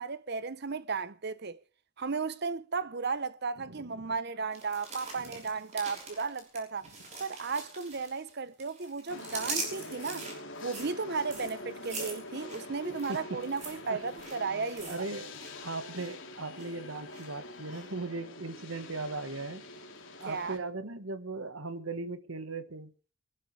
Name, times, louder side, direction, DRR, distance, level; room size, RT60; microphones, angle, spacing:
voice 1, 0.0-1.6 2.0-6.9 7.2-10.3 10.6-14.9 20.3-20.6, right 4 dB, 50° right, 0.8 m, -35 dB
voice 2, 3.6-4.1 5.2-5.4 12.9-13.5 13.9-14.0 14.9-15.3 15.6-19.6 20.2-22.9, right 3 dB, 70° right, 1.5 m, -38 dB
sound 1, 4.5-8.3 8.6-15.5 15.8-16.1 16.6-17.3 17.7-17.8, right 3 dB, 35° right, 5.7 m, -42 dB
sound 2, 9.1-20.6, left 2 dB, 65° left, 3.4 m, -45 dB
24.0 x 12.5 x 3.3 m
head